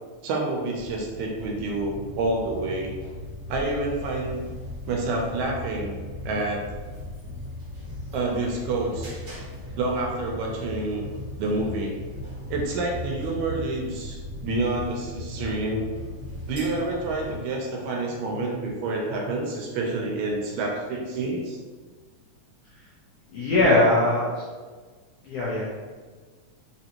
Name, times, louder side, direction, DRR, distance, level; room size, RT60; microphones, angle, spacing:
voice 1, 0.2-2.9 3.5-4.4 4.9-6.0 6.3-6.6 8.1-9.2 9.8-11.1 11.4-12.0 12.5-15.9 16.5-21.6, right 2 dB, 75° right, 0 dB, 1.8 m, -28 dB
sound 1, 0.7-17.4, left 1 dB, 60° right, 0.8 m, -37 dB
voice 2, 23.3-24.4 25.2-25.7, left 2 dB, 70° left, -7 dB, 1.5 m, -21 dB
5.1 x 3.0 x 2.9 m, 1.4 s
omnidirectional pair, 3.5 m